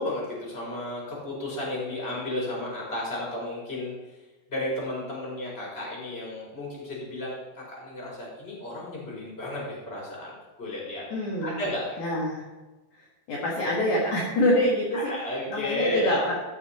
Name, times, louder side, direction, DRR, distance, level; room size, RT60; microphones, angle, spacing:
voice 1, 0.0-3.9 4.5-11.0 11.4-12.0 14.9-16.2, left 1 dB, 15° left, -4 dB, 4.0 m, -33 dB
voice 2, 11.1-11.6 12.0-12.5 12.9-15.1 15.5-16.4, left 1 dB, 55° left, -4 dB, 2.7 m, -26 dB
13.5 x 7.3 x 4.3 m, 1.2 s
omnidirectional pair, 5.0 m